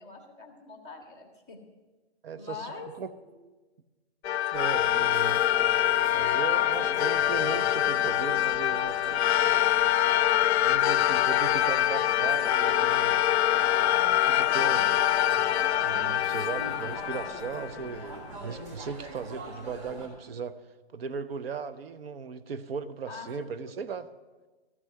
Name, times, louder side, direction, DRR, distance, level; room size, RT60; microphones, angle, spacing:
voice 1, 0.0-1.6 2.3-2.9 3.2-3.4 23.1-23.5, left 4 dB, 10° right, -1 dB, 0.4 m, -43 dB
voice 2, 2.2-3.1 4.5-5.5 6.1-9.2 10.6-13.2 14.2-15.0 15.8-20.6 20.9-24.1, right 5 dB, 65° right, 12 dB, 0.8 m, -37 dB
sound 1, 4.2-18.0, left 12 dB, 80° left, 0.5 m, -25 dB
sound 2, 4.5-20.1, right 1 dB, 30° right, 1.8 m, -43 dB
13.5 x 6.1 x 7.6 m, 1.2 s
hypercardioid pair, 170°, 32 cm